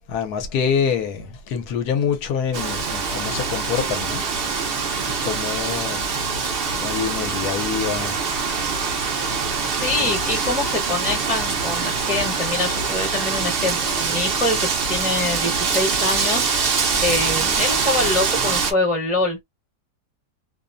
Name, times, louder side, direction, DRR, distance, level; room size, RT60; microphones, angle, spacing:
voice 1, 0.0-4.3 5.1-6.1 6.7-9.5 9.9-10.5 15.5-15.6, left 7 dB, 75° left, 1.2 m, -27 dB
Wind, 2.5-18.7, right 5 dB, 60° right, 0.6 m, -24 dB
voice 2, 9.8-16.5 17.0-19.4, left 2 dB, 10° right, 0.6 m, -25 dB
2.8 x 2.0 x 2.4 m
omnidirectional pair, 1.7 m